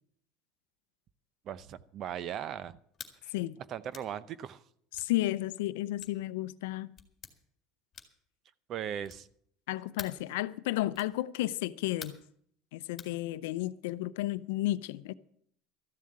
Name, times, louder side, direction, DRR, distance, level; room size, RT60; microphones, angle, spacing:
voice 1, 1.5-2.8 3.2-3.3 3.7-4.6 8.7-9.3, right 9 dB, 45° right, 0.6 m, -38 dB
sound 1, 2.9-3.2 3.9-4.1 4.9-5.1 6.0-6.2 7.0-7.3 7.9-8.3 9.0-9.3 10.0-10.2 10.9-11.2 12.0-12.3 13.0-13.2, left 8 dB, 30° left, 2.0 m, -47 dB
voice 2, 4.9-6.9 9.7-12.2 12.7-15.1, left 16 dB, 90° left, 0.6 m, -32 dB
13.5 x 7.4 x 8.7 m
supercardioid pair, 125°, 0 cm